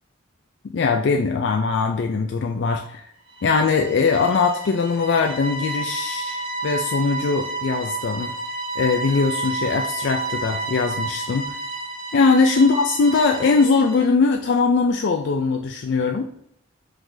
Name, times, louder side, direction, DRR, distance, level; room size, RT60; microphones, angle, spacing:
voice 1, 0.6-3.1 3.4-8.3 8.8-11.6 12.1-16.3, left 4 dB, 60° left, 3 dB, 0.3 m, -21 dB
sound 1, 3.3-14.1, right 3 dB, 65° right, 0.8 m, -31 dB
4.9 x 3.8 x 2.6 m, 0.70 s
head